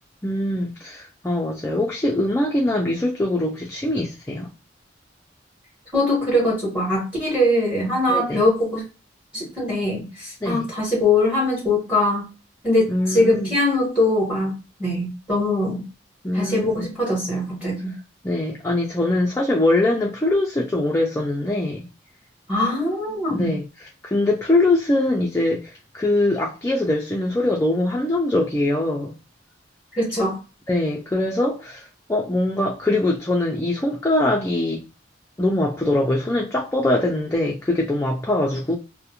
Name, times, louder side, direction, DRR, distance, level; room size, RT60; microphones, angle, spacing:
voice 1, 0.2-4.5 8.1-8.4 10.4-10.7 12.9-13.5 16.2-16.8 18.2-21.9 23.3-29.1 30.7-34.8 35.4-38.8, left 1 dB, 15° left, 0.4 m, -22 dB
voice 2, 5.9-8.8 9.3-12.2 12.6-14.5 14.8-15.8 16.3-17.9 22.5-23.5 29.9-30.4, left 1 dB, 5° right, 1.2 m, -22 dB
2.5 x 2.0 x 2.8 m
head